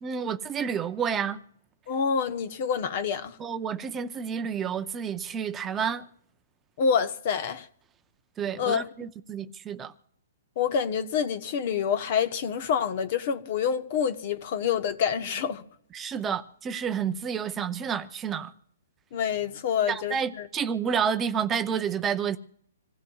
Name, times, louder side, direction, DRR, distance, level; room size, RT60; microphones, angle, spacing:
voice 1, 0.0-1.4 3.4-6.0 8.4-9.9 15.9-18.5 19.9-22.4, right 7 dB, 15° right, 0.6 m, -30 dB
voice 2, 1.9-3.4 6.8-7.7 8.6-9.1 10.6-15.6 19.1-20.5, left 7 dB, 45° left, 1.1 m, -27 dB
26.5 x 16.0 x 2.4 m
hypercardioid pair, 150°, 0 cm